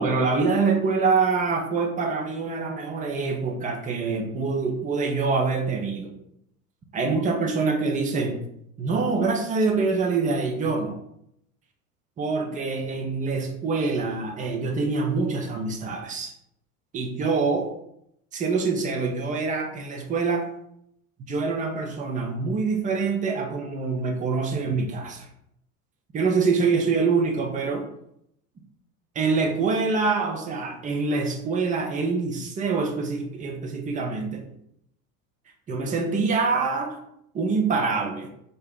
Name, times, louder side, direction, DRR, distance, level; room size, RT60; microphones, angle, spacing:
voice 1, 0.0-6.1 6.9-8.4 8.8-11.0 12.2-16.3 16.9-17.7 18.3-20.5 21.3-25.3 26.1-27.9 29.2-34.5 35.7-37.0 37.3-38.3, right 4 dB, 20° right, 2 dB, 0.4 m, -25 dB
2.6 x 2.1 x 3.5 m, 0.74 s
figure-of-eight pair, 75°, 44 cm